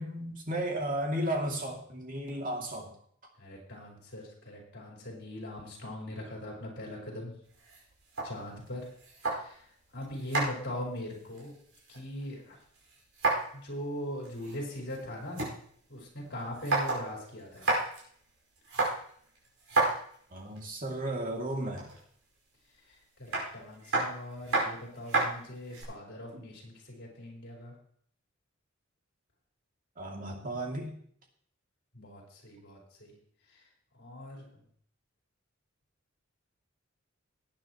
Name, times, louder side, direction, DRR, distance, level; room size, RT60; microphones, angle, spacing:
voice 1, 0.0-2.9 20.3-21.9 30.0-31.0, right 1 dB, 40° right, 0 dB, 2.6 m, -34 dB
voice 2, 3.4-7.3 8.2-8.9 9.2-9.7 9.9-11.5 11.9-12.6 13.5-15.4 15.9-17.7 22.9-27.7 31.9-33.1 33.5-33.6 33.9-34.6, equal, 55° left, -2 dB, 4.8 m, -41 dB
sound 1, 7.5-9.7 10.0-12.2 12.5-13.6 13.9-14.0 14.2-15.5 15.9-16.0 16.4-17.1 17.4-18.0 18.6-20.6 21.5-22.0 23.3-25.8, right 3 dB, 75° right, 5.1 m, -31 dB
18.5 x 9.4 x 3.1 m, 0.62 s
head